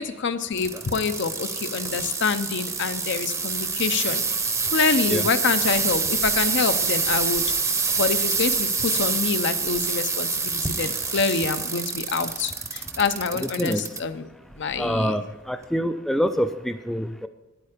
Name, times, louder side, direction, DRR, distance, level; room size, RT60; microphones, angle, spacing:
voice 1, 0.0-14.3 14.6-15.2, left 5 dB, 60° left, 10 dB, 0.6 m, -26 dB
sound 1, 0.5-14.0 14.5-15.0 15.6-15.7, right 5 dB, 15° right, 0.8 m, -26 dB
voice 2, 13.4-13.9 14.8-17.3, equal, ahead, 8 dB, 0.3 m, -26 dB
9.6 x 8.9 x 5.0 m, 1.1 s
head